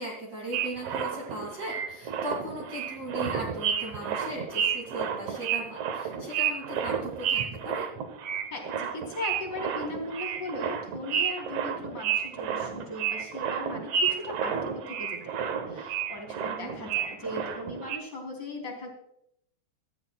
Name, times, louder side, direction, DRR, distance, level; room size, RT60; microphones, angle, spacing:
voice 1, 0.0-7.9 16.4-16.7, right 1 dB, 30° right, -3 dB, 1.9 m, -38 dB
sound 1, 0.5-18.0, right 8 dB, 80° right, 1.6 m, -31 dB
voice 2, 8.5-18.9, left 2 dB, 25° left, 1 dB, 3.2 m, -38 dB
18.0 x 13.5 x 2.3 m, 0.72 s
omnidirectional pair, 4.9 m